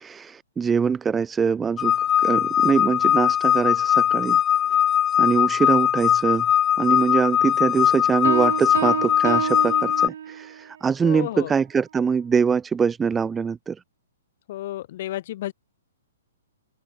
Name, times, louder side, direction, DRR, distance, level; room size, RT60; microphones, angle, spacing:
voice 1, 0.0-1.9 2.2-4.4 5.2-6.5 6.8-13.8, right 6 dB, 10° right, 1.1 m, -23 dB
sound 1, 1.8-10.1, left 10 dB, 20° left, 4.3 m, -20 dB
sound 2, 8.2-10.6, right 9 dB, 55° right, 2.9 m, -28 dB
voice 2, 11.0-11.5 14.5-15.5, left 14 dB, 45° left, 6.9 m, -31 dB
open air
figure-of-eight pair, 120°, 0 cm